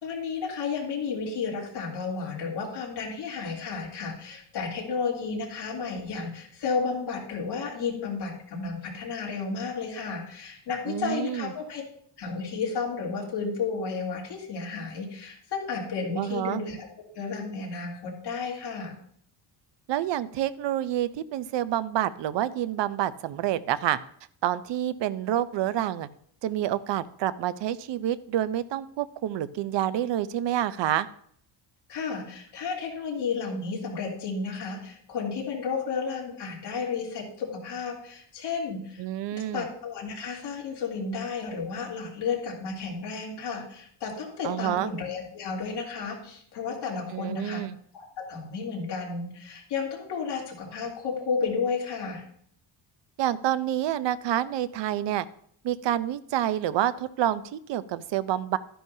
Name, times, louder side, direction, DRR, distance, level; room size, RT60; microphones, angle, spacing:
voice 1, 0.0-11.8 12.2-16.9 17.1-18.9 31.9-39.0 39.3-47.6 47.9-52.2, left 5 dB, 55° left, -3 dB, 3.1 m, -32 dB
voice 2, 10.9-11.5 16.2-16.6 19.9-24.0 24.4-26.1 26.4-31.1 39.0-39.7 44.4-44.9 47.1-47.8 53.2-55.2 55.6-58.6, right 12 dB, 65° right, 15 dB, 0.6 m, -28 dB
12.5 x 10.0 x 2.7 m, 0.64 s
wide cardioid pair, 180°, 47 cm